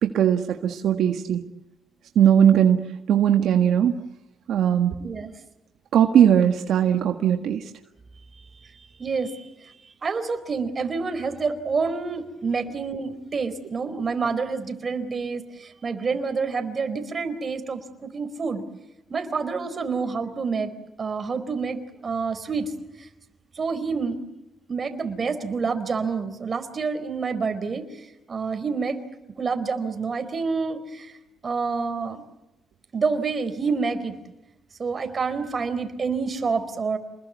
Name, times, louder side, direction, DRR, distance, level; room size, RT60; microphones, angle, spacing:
voice 1, 0.0-1.4 2.2-3.9 4.5-5.0 5.9-7.7, right 9 dB, 75° right, 5 dB, 1.7 m, -19 dB
voice 2, 5.0-5.3 9.0-9.4 10.0-18.6 19.1-20.7 21.0-22.7 23.6-24.2 24.7-27.8 28.3-29.0 29.4-31.1 31.4-32.2 32.9-34.1 34.8-37.0, right 4 dB, 40° right, 9 dB, 4.3 m, -28 dB
28.5 x 21.5 x 8.3 m, 0.93 s
cardioid pair, 90°, 0 cm